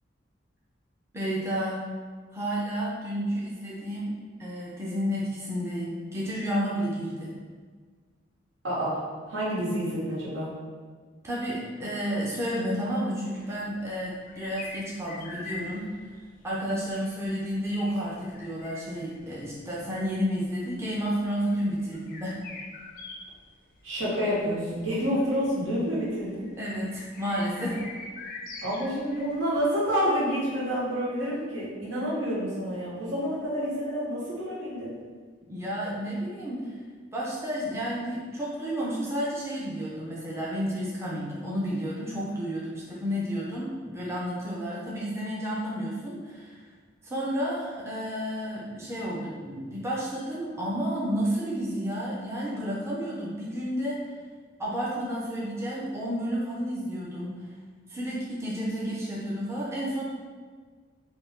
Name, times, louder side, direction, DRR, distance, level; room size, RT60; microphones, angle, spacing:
voice 1, 1.1-1.9 2.3-7.3 11.2-15.9 16.4-22.4 26.6-27.8 35.5-36.7 37.1-46.6 47.0-54.1 54.6-57.4 57.9-60.0, equal, 15° right, -6 dB, 0.4 m, -31 dB
voice 2, 8.6-9.0 9.3-10.5 23.8-26.4 28.6-34.9, equal, 85° right, -8 dB, 1.1 m, -28 dB
sound 1, 13.3-29.6, left 3 dB, 45° left, 0.4 m, -45 dB
2.5 x 2.2 x 3.5 m, 1.5 s
head